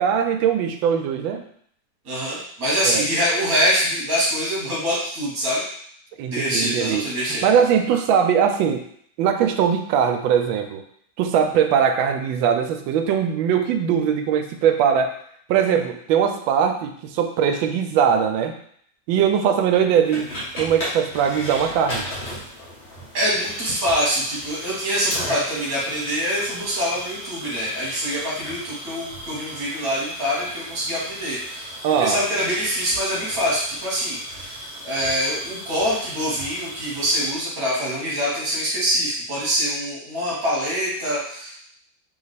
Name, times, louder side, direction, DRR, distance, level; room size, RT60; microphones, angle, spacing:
voice 1, 0.0-1.4 2.8-3.1 6.2-7.0 7.4-8.8 9.2-10.8 11.2-15.1 15.5-18.5 19.1-20.3 20.6-22.0 31.8-32.2, right 8 dB, 85° right, 6 dB, 1.3 m, -20 dB
voice 2, 2.0-5.6 6.3-7.5 23.1-34.6 34.8-41.6, equal, 50° right, -6 dB, 1.5 m, -24 dB
sound 1, 20.0-37.3, equal, 35° left, 1.5 m, -36 dB
3.4 x 3.1 x 4.1 m, 0.64 s
omnidirectional pair, 2.1 m